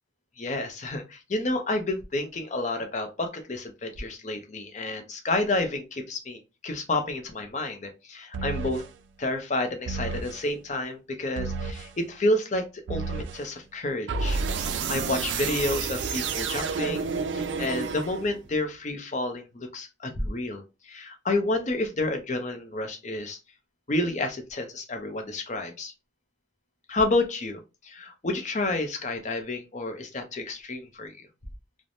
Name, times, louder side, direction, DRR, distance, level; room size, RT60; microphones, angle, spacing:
voice 1, 0.4-8.8 9.2-23.4 23.9-25.9 26.9-31.1, left 2 dB, 40° left, 5 dB, 0.6 m, -30 dB
sound 1, 8.3-8.9 9.9-10.4 11.4-11.9 12.9-13.4 14.1-18.5, right 5 dB, 80° right, 0.3 m, -30 dB
3.2 x 2.0 x 2.6 m, 0.27 s
head